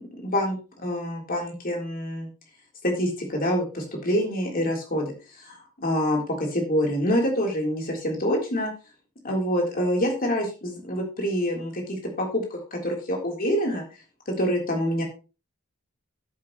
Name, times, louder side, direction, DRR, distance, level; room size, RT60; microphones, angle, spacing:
voice 1, 0.0-2.3 2.8-8.7 9.2-13.8 14.3-15.0, equal, 40° left, 0 dB, 3.7 m, -26 dB
13.5 x 8.5 x 3.1 m, 0.32 s
head